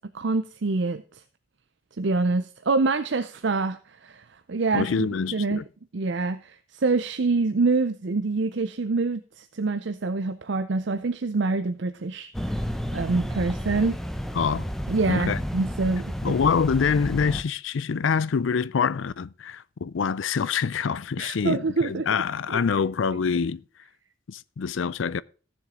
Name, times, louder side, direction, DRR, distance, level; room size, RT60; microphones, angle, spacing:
voice 1, 0.1-1.2 2.0-5.6 5.9-14.0 14.9-16.4 21.2-22.1 22.5-22.6, right 3 dB, 60° right, 0.6 m, -26 dB
voice 2, 4.7-5.6 14.3-14.7 15.1-15.4 16.2-23.6 24.3-25.2, left 6 dB, 70° left, 0.4 m, -25 dB
sound 1, 12.3-17.4, equal, ahead, 0.6 m, -31 dB
15.0 x 7.2 x 3.8 m
head